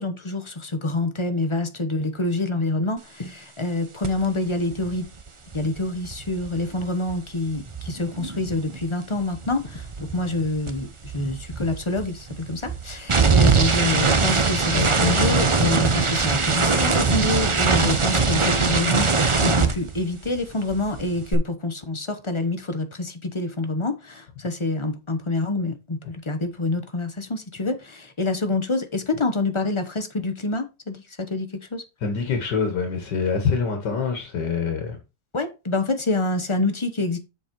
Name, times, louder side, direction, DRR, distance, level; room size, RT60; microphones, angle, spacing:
voice 1, 0.0-5.1 5.5-31.8 35.3-37.2, left 2 dB, 25° left, 0.7 m, -27 dB
sound 1, 4.0-4.3 4.5-8.9 9.2-20.4 20.7-21.3, right 4 dB, 45° right, 0.4 m, -22 dB
voice 2, 14.7-15.7 32.0-35.0, left 5 dB, 80° left, 1.9 m, -25 dB
7.1 x 5.3 x 4.5 m
omnidirectional pair, 1.8 m